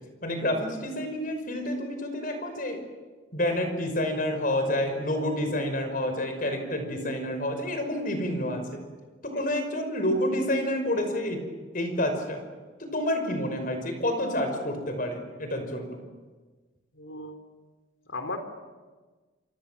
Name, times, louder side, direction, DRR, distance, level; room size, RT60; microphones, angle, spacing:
voice 1, 0.2-2.8 3.3-8.8 9.2-11.4 11.7-12.4 12.8-16.0, left 1 dB, 45° left, 6 dB, 5.5 m, -29 dB
voice 2, 16.9-17.4 18.1-18.4, left 2 dB, 80° left, 7 dB, 3.8 m, -36 dB
28.5 x 26.0 x 7.6 m, 1.3 s
head